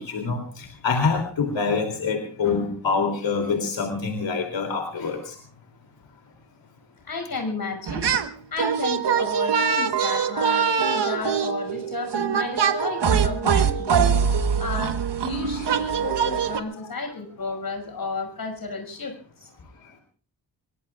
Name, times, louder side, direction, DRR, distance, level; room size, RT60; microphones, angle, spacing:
voice 1, 0.0-5.4 10.0-10.4 10.9-11.2 14.1-14.6 15.5-15.6 19.8-20.0, left 5 dB, 85° left, 3 dB, 3.2 m, -27 dB
voice 2, 7.0-8.1 8.5-14.1 14.6-19.5, left 3 dB, 55° left, 5 dB, 5.9 m, -33 dB
sound 1, 7.9-8.3 8.6-16.6, right 7 dB, 70° right, 1.4 m, -23 dB
24.5 x 22.5 x 2.4 m, 0.41 s
wide cardioid pair, 120°, 43 cm